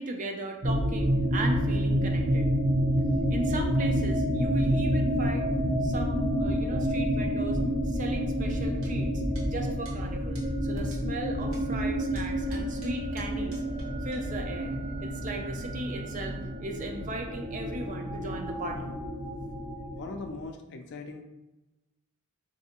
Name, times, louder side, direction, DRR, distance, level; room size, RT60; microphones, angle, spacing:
voice 1, 0.0-2.5 3.1-5.5 5.8-9.1 9.5-13.6 14.0-18.9, right 2 dB, 35° right, 3 dB, 0.4 m, -37 dB
sound 1, 0.6-20.5, equal, 60° right, 1.0 m, -29 dB
sound 2, 8.8-8.9 9.4-9.5 9.9-10.0 10.4-10.5 10.9-11.0 11.5-11.6 12.2-13.9 14.1-14.2, right 3 dB, 85° right, 1.0 m, -50 dB
voice 2, 19.9-21.2, left 3 dB, 55° left, 5 dB, 0.4 m, -40 dB
3.2 x 2.7 x 2.8 m, 1.0 s
head